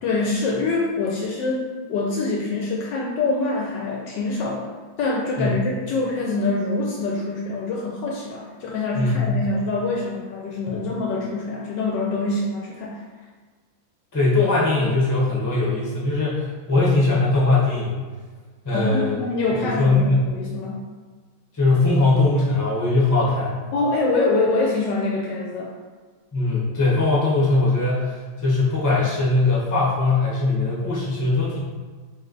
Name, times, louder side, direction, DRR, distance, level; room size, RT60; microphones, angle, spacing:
voice 1, 0.0-4.7 5.0-13.0 18.7-20.8 23.7-25.7, left 3 dB, 75° left, -2 dB, 1.1 m, -25 dB
voice 2, 8.9-9.4 10.7-10.9 14.1-18.0 18.6-19.2 19.6-20.2 21.5-23.6 26.3-31.6, left 2 dB, 15° left, -7 dB, 0.6 m, -20 dB
3.2 x 3.2 x 3.8 m, 1.4 s
omnidirectional pair, 2.2 m